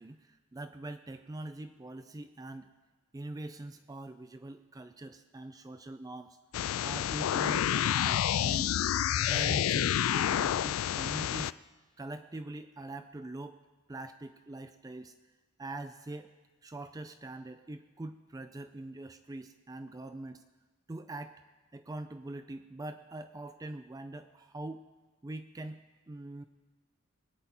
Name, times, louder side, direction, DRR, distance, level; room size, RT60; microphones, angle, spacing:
voice 1, 0.0-2.7 3.1-6.4 6.8-8.8 9.1-11.6 12.0-13.6 13.9-15.2 15.6-16.3 16.6-20.4 20.9-21.4 21.7-24.8 25.2-26.4, right 2 dB, 20° right, 9 dB, 0.4 m, -43 dB
sound 1, 6.5-11.5, left 10 dB, 85° left, 0.3 m, -29 dB
20.5 x 9.2 x 4.4 m, 1.3 s
head